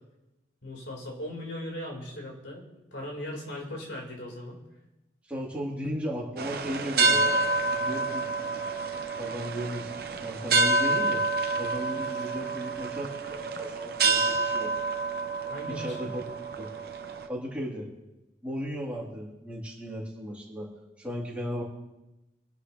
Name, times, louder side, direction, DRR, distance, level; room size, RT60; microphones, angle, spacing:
voice 1, 0.6-2.6 2.9-4.6 15.5-16.1, left 1 dB, 85° left, -1 dB, 4.2 m, -38 dB
voice 2, 5.3-7.4 7.8-8.3 9.1-9.9 10.2-11.2 11.6-14.7 15.7-16.2 16.6-16.7 17.3-17.9 18.4-20.7 21.0-21.6, equal, 5° right, -5 dB, 3.3 m, -35 dB
sound 1, 6.4-17.3, right 3 dB, 55° right, 0.9 m, -28 dB
26.0 x 11.0 x 3.2 m, 0.98 s
head